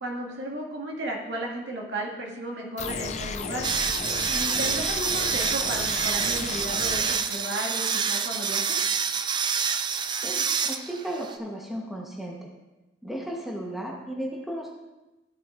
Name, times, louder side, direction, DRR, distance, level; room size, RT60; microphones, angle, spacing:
voice 1, 0.0-3.7 4.3-8.8, right 1 dB, 75° right, -2 dB, 1.9 m, -34 dB
sound 1, 2.8-7.2, left 5 dB, 35° left, 0.5 m, -34 dB
sound 2, 3.6-11.4, right 6 dB, 25° right, 0.3 m, -27 dB
voice 2, 10.2-12.5 13.0-14.7, right 1 dB, ahead, -2 dB, 1.0 m, -35 dB
14.5 x 7.7 x 2.5 m, 1.1 s
head